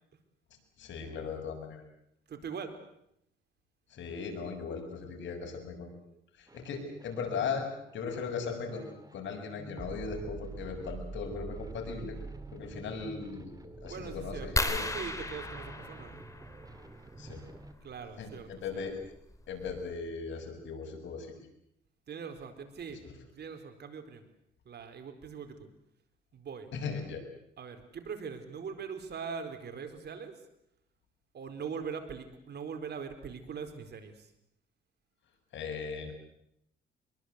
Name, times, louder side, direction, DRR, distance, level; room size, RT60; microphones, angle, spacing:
voice 1, 0.8-1.8 3.9-5.9 6.4-7.7 7.9-12.2 12.5-14.9 17.2-17.4 18.2-19.0 19.5-21.3 23.0-23.1 26.7-27.2 35.5-36.1, left 5 dB, 70° left, 3 dB, 7.2 m, -38 dB
voice 2, 2.3-2.7 6.1-6.2 13.9-16.2 17.8-18.8 22.1-23.0 23.3-24.2 24.6-25.7 26.3-26.7 27.6-30.3 31.3-34.3, right 6 dB, 55° right, 7 dB, 4.3 m, -42 dB
sound 1, 6.5-17.7, right 3 dB, 20° right, 2.6 m, -46 dB
sound 2, 14.6-16.9 18.5-18.7 19.3-19.4 19.7-19.9, left 2 dB, 15° left, 3.3 m, -34 dB
24.5 x 22.5 x 8.2 m, 0.78 s
cardioid pair, 90°, 20 cm